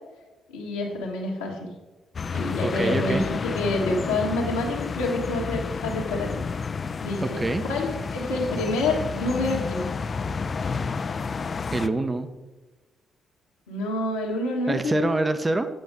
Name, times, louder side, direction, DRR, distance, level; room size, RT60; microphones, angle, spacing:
voice 1, 0.5-1.7 2.3-6.4 7.0-7.4 7.7-9.9 13.7-15.1, left 2 dB, 80° left, -3 dB, 1.3 m, -28 dB
sound 1, 2.1-11.9, left 5 dB, 45° left, 0.4 m, -30 dB
voice 2, 2.6-3.2 7.2-7.6 11.7-12.3 14.7-15.7, right 2 dB, 25° right, 9 dB, 0.7 m, -25 dB
7.9 x 7.7 x 3.5 m, 1.2 s
hypercardioid pair, 40°, 0 cm